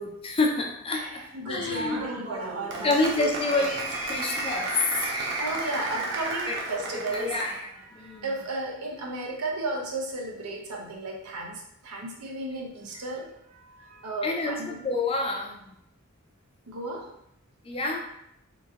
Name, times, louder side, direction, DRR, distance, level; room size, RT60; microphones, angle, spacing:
voice 1, 0.0-2.1 2.8-5.4 6.5-6.6 6.9-7.5 7.9-8.3 14.2-15.8 17.6-18.0, left 3 dB, 25° left, 1 dB, 0.4 m, -28 dB
voice 2, 0.9-3.3 5.4-7.4 7.9-14.8 16.7-17.1, right 2 dB, 90° right, 0 dB, 0.8 m, -34 dB
Applause, 1.8-7.6, right 2 dB, 50° right, 0.5 m, -33 dB
2.9 x 2.6 x 3.6 m, 0.77 s
head